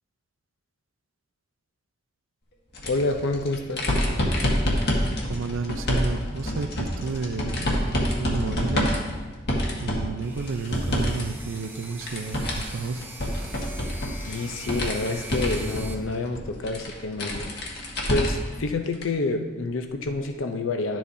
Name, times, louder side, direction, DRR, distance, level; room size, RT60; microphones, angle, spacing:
sound 1, 2.7-11.2 11.5-18.5 18.9-19.0 20.2-20.3, equal, 55° left, 1.5 m, -27 dB
voice 1, 2.9-3.9 14.2-17.5 18.1-21.0, left 2 dB, 80° left, 6 dB, 0.6 m, -28 dB
voice 2, 5.2-9.0 9.8-13.1, right 4 dB, 80° right, 9 dB, 0.5 m, -32 dB
sound 2, 10.2-15.9, right 3 dB, 10° right, 0.8 m, -43 dB
11.5 x 7.5 x 2.7 m, 1.3 s
head